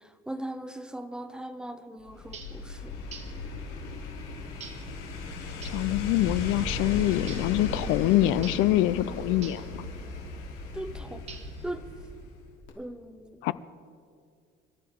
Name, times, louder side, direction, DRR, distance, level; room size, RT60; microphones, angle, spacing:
voice 1, 0.3-2.8 10.7-11.2 11.6-11.8 12.8-13.4, right 1 dB, 5° right, 10 dB, 0.5 m, -38 dB
sound 1, 2.0-12.4 12.7-12.8, left 3 dB, 90° left, 3.4 m, -36 dB
sound 2, 2.3-2.6 3.1-3.4 4.6-4.9 5.6-5.9 7.3-7.6 8.4-8.7 9.4-9.7 11.3-11.7, right 6 dB, 30° right, 1.1 m, -45 dB
voice 2, 5.7-9.9 13.4-13.5, left 15 dB, 75° left, 16 dB, 0.5 m, -25 dB
26.0 x 12.5 x 3.7 m, 2.2 s
cardioid pair, 170°, 21 cm